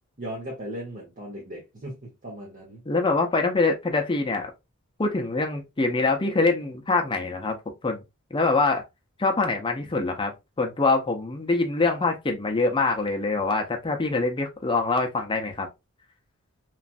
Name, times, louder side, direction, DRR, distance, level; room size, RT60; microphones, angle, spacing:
voice 1, 0.2-2.8, right 1 dB, 35° right, 1.0 m, -37 dB
voice 2, 2.9-4.5 5.0-7.6 7.8-8.0 8.3-8.8 9.2-10.3 10.6-15.7, left 3 dB, 25° left, 0.6 m, -24 dB
3.1 x 2.5 x 2.5 m
head